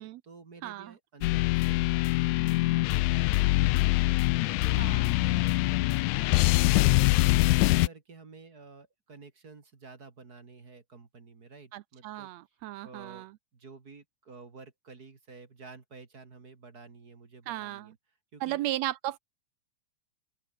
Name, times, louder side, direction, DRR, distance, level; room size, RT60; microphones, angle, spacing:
voice 1, 0.0-7.1 7.5-12.3 12.8-13.3 13.5-17.9 18.3-18.7, right 4 dB, 35° right, 2.5 m, -51 dB
voice 2, 0.6-0.9 4.8-5.1 11.7-13.3 17.5-17.9 18.4-19.2, right 15 dB, 75° right, 1.7 m, -35 dB
sound 1, 1.2-7.9, left 20 dB, 85° left, 1.9 m, -24 dB
open air
omnidirectional pair, 3.3 m